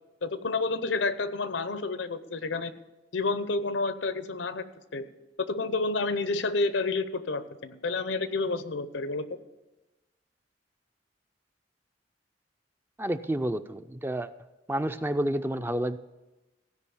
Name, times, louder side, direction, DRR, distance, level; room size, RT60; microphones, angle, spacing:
voice 1, 0.2-2.7 3.1-4.7 4.9-5.1 5.4-9.3, left 3 dB, 90° left, 13 dB, 0.7 m, -29 dB
voice 2, 13.0-14.3 14.7-16.0, right 1 dB, 10° right, 11 dB, 0.4 m, -29 dB
16.0 x 5.3 x 7.1 m, 1.1 s
head